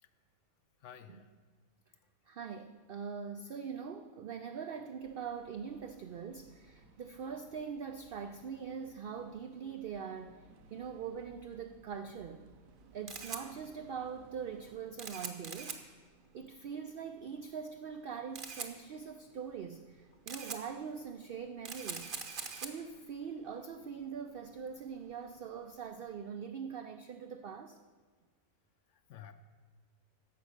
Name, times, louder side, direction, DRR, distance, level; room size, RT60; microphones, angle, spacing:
voice 1, 0.8-1.3 28.9-29.3, left 9 dB, 65° left, 10 dB, 0.8 m, -52 dB
voice 2, 2.3-10.4 10.7-12.5 12.9-15.8 16.3-22.1 22.6-27.8, right 6 dB, 90° right, 8 dB, 0.5 m, -42 dB
sound 1, 5.0-14.8, right 4 dB, 70° right, 1.1 m, -62 dB
Camera, 12.7-26.1, right 5 dB, 45° right, 0.9 m, -46 dB
10.5 x 7.3 x 6.5 m, 1.5 s
omnidirectional pair, 1.5 m